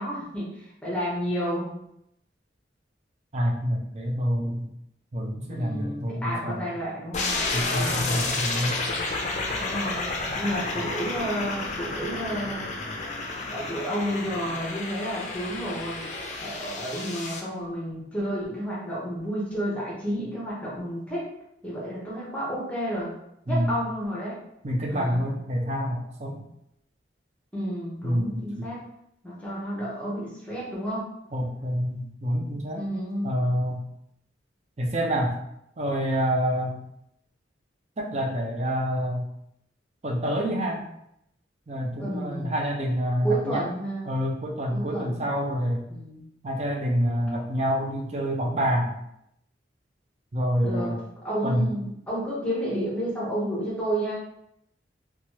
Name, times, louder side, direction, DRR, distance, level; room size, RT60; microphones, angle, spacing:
voice 1, 0.0-1.8 5.5-7.4 7.8-8.2 9.6-10.1 10.3-12.7 13.5-16.1 16.4-21.2 21.6-23.2 23.5-24.4 24.9-25.2 27.5-28.8 29.2-31.1 32.7-33.4 42.0-42.5 43.2-44.1 44.7-45.3 45.9-46.2 50.6-50.9 51.2-54.1, equal, 5° left, -7 dB, 0.8 m, -31 dB
voice 2, 3.3-4.7 5.1-6.6 7.5-8.8 23.5-23.7 24.6-26.4 28.0-28.7 31.3-32.8 33.2-33.8 34.8-35.4 35.8-36.8 38.0-39.3 40.0-40.8 41.7-43.7 44.0-45.9 46.4-48.9 50.3-51.0 51.4-51.7, equal, 35° right, 0 dB, 0.5 m, -27 dB
sound 1, 7.1-17.4, left 3 dB, 40° left, 0.4 m, -31 dB
2.9 x 2.3 x 2.9 m, 0.79 s
head